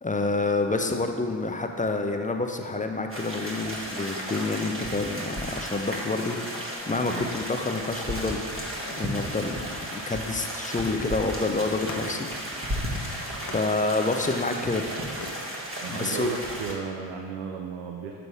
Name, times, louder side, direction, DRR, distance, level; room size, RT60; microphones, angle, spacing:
voice 1, 0.0-8.4 9.0-9.6 9.9-12.3 13.5-14.8 15.9-16.3, left 3 dB, 15° left, 4 dB, 0.5 m, -28 dB
sound 1, 3.1-16.7, equal, 25° right, 1.3 m, -34 dB
sound 2, 8.1-11.1 11.3-11.4 11.9-13.1 13.4-13.7 14.1-14.7 15.2-15.4, left 3 dB, 35° left, 1.0 m, -43 dB
voice 2, 15.8-18.2, right 6 dB, 90° right, 1 dB, 0.6 m, -34 dB
6.8 x 3.9 x 4.7 m, 2.1 s
supercardioid pair, 55°, 49 cm